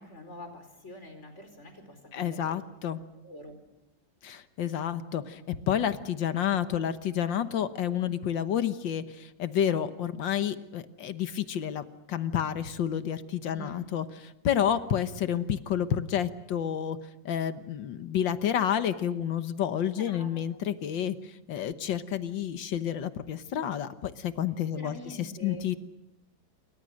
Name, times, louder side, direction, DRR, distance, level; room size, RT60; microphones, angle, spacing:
voice 1, 0.0-2.6 3.2-3.5 13.5-13.8 19.9-20.6 24.7-25.6, left 1 dB, 40° left, 6 dB, 4.9 m, -46 dB
voice 2, 2.1-3.0 4.2-17.0 17.3-25.8, left 9 dB, 85° left, 11 dB, 1.9 m, -30 dB
28.0 x 24.0 x 6.4 m, 0.87 s
omnidirectional pair, 2.0 m